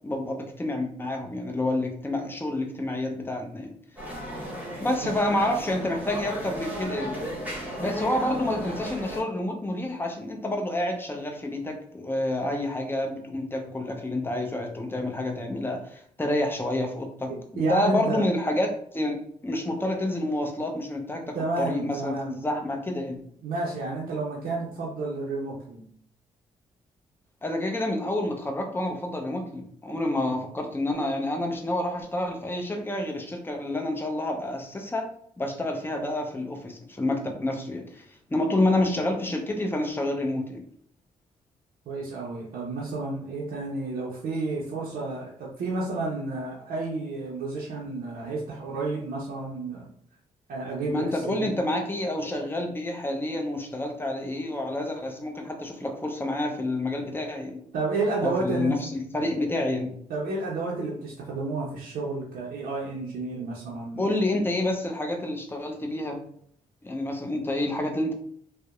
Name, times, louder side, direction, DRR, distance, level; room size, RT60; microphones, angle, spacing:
voice 1, 0.0-3.7 4.8-7.2 7.8-19.2 19.4-23.2 27.4-35.1 35.4-38.0 38.3-40.6 50.9-57.6 58.2-60.0 64.0-66.2 66.8-68.1, left 1 dB, 15° left, 2 dB, 0.6 m, -28 dB
sound 1, 4.0-9.2, equal, 10° right, 1.2 m, -35 dB
voice 2, 17.3-18.2 21.3-22.4 23.4-25.8 41.9-49.8 50.5-51.5 57.7-58.7 60.1-64.0, right 3 dB, 65° right, -4 dB, 0.5 m, -31 dB
2.6 x 2.0 x 2.4 m, 0.63 s
hypercardioid pair, 45°, 16 cm